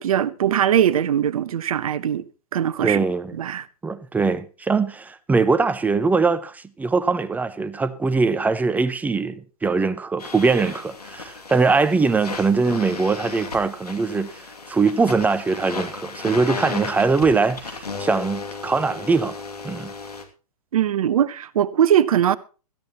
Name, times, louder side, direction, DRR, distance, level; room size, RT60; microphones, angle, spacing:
voice 1, 0.0-2.2 2.5-3.0 3.4-3.6 20.7-22.4, right 10 dB, 65° right, 0.9 m, -20 dB
voice 2, 2.8-3.3 3.8-19.4 19.6-19.9, right 4 dB, 10° right, 0.8 m, -22 dB
sound 1, 10.2-20.2, left 4 dB, 90° left, 2.5 m, -35 dB
17.0 x 13.5 x 3.0 m
hypercardioid pair, 120°, 19 cm